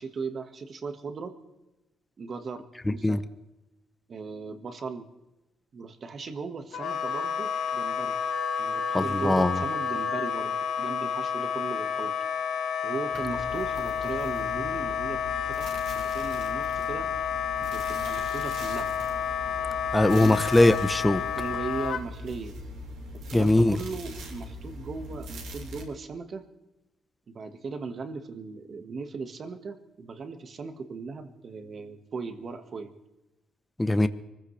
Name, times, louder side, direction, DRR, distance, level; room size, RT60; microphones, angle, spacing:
voice 1, 0.0-1.3 2.2-3.2 4.1-5.1 5.7-8.2 8.6-12.1 12.8-17.1 17.6-18.9 20.2-20.4 21.4-22.6 23.3-26.4 27.3-32.9, right 4 dB, 45° right, 8 dB, 1.5 m, -38 dB
Wind instrument woodwind instrument, 6.7-22.0, left 7 dB, 75° left, 1.3 m, -30 dB
voice 2, 8.9-9.6 19.9-21.2 23.3-23.8 33.8-34.1, left 1 dB, 10° left, 12 dB, 0.8 m, -21 dB
sound 1, 13.1-25.8, left 1 dB, 85° right, 3.1 m, -41 dB
24.0 x 15.0 x 3.3 m, 1.0 s
cardioid pair, 90°, 0 cm